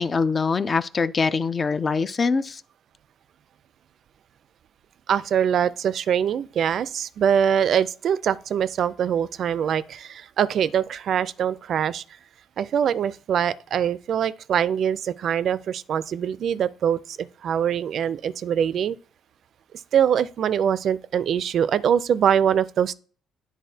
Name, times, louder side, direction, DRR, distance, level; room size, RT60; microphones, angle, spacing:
voice 1, 0.0-2.6, left 4 dB, 35° left, 0.4 m, -23 dB
voice 2, 5.1-12.0 12.6-19.0 19.9-22.9, right 8 dB, 60° right, 0.4 m, -23 dB
10.5 x 3.7 x 2.7 m
cardioid pair, 95°, 0 cm